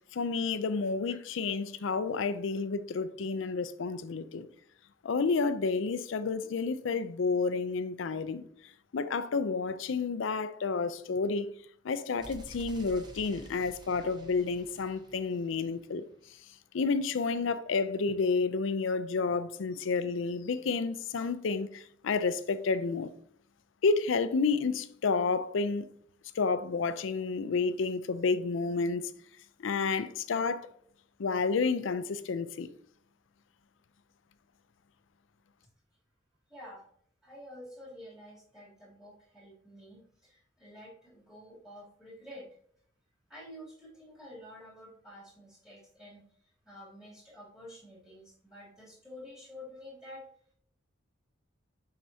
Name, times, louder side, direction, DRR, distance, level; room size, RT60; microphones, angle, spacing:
voice 1, 0.1-4.5 5.0-11.5 11.8-16.4 16.7-23.1 23.8-25.9 26.3-29.1 29.6-30.7 31.2-32.7, left 4 dB, 75° left, 0.4 m, -30 dB
sound 1, 12.2-16.1, equal, 20° right, 0.8 m, -50 dB
voice 2, 36.5-36.8 37.2-42.5 43.3-50.3, left 1 dB, 5° right, 2.7 m, -49 dB
7.4 x 5.8 x 2.7 m
head